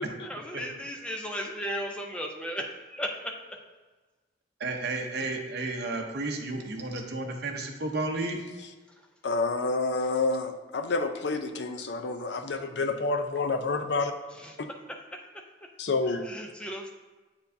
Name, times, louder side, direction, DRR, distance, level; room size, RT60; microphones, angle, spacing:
voice 1, 0.2-3.3 14.3-14.6 16.2-16.9, equal, 5° left, 1 dB, 0.6 m, -35 dB
voice 2, 4.6-8.4, right 2 dB, 60° right, 2 dB, 0.8 m, -32 dB
voice 3, 9.2-14.1 15.8-16.3, left 3 dB, 65° left, 7 dB, 0.5 m, -28 dB
8.4 x 4.5 x 2.7 m, 1.3 s
head